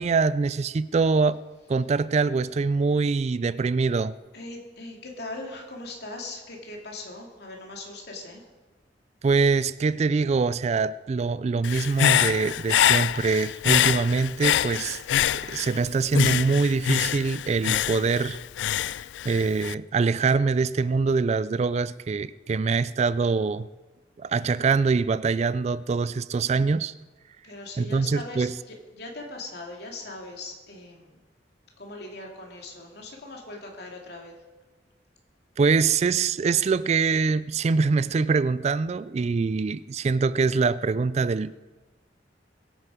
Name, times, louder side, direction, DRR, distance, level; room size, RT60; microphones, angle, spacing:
voice 1, 0.0-1.4 1.7-4.2 9.2-15.0 15.5-18.4 19.2-23.7 24.2-26.9 27.8-28.5 35.6-41.6, right 4 dB, 35° right, 17 dB, 0.3 m, -24 dB
voice 2, 4.3-8.4 27.4-31.2 31.8-34.3, left 2 dB, 60° left, 0 dB, 2.8 m, -40 dB
Human voice / Breathing, 11.6-15.8 16.1-19.7, left 10 dB, 85° left, 0.3 m, -25 dB
21.5 x 9.0 x 5.0 m, 1.2 s
head